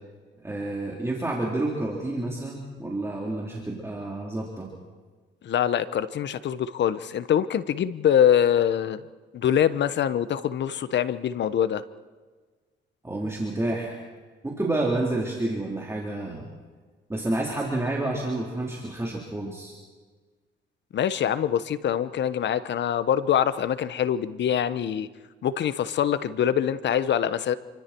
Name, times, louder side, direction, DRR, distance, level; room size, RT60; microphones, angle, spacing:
voice 1, 0.4-4.7 13.0-14.0 14.4-16.4 17.1-19.7, right 2 dB, 15° right, -3 dB, 4.1 m, -29 dB
voice 2, 5.4-9.0 9.3-11.8 20.9-25.1 25.4-27.6, left 9 dB, 65° left, 14 dB, 1.1 m, -24 dB
29.0 x 25.0 x 4.7 m, 1.4 s
cardioid pair, 90°, 20 cm